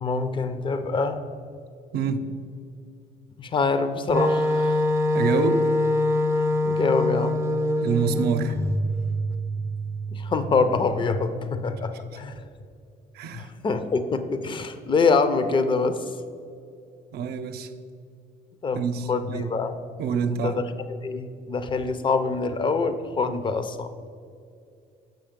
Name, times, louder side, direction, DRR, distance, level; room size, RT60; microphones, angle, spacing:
voice 1, 0.0-1.3 3.4-4.8 6.4-7.5 10.1-12.4 13.3-16.2 18.6-19.8 20.3-23.9, left 4 dB, 30° left, 10 dB, 0.6 m, -25 dB
voice 2, 1.9-2.3 5.1-5.7 7.8-8.6 13.1-13.5 17.1-17.7 18.7-19.5 20.0-20.5, right 6 dB, 70° right, 8 dB, 0.7 m, -26 dB
Wind instrument woodwind instrument, 4.1-8.8, left 2 dB, 15° right, 0.5 m, -23 dB
Keyboard (musical), 8.5-12.0, right 3 dB, 85° left, 0.9 m, -31 dB
7.7 x 5.4 x 5.2 m, 2.4 s
cardioid pair, 110°, 17 cm